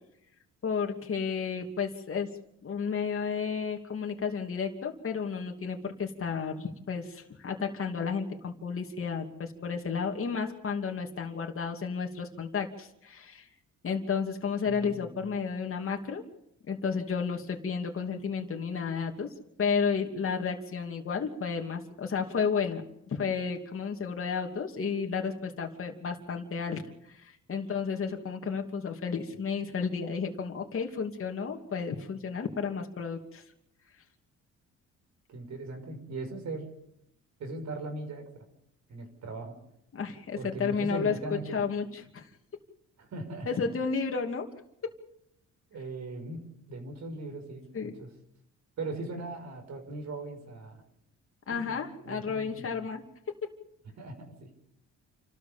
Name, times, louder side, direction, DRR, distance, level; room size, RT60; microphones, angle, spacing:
voice 1, 0.6-2.3 2.6-13.4 13.8-16.2 16.7-19.3 19.6-26.8 27.1-33.4 39.9-42.3 43.5-44.5 44.8-44.9 47.7-47.9 51.5-53.0, left 5 dB, 45° left, 2 dB, 2.8 m, -32 dB
voice 2, 14.6-15.3 35.3-36.7 37.4-38.4 38.9-39.6 40.4-41.6 43.0-43.7 45.7-48.1 48.8-50.8 51.5-51.8 52.0-52.8 54.0-54.5, right 2 dB, 65° right, 5 dB, 5.8 m, -39 dB
28.5 x 13.5 x 7.1 m, 0.78 s
cardioid pair, 90°, 30 cm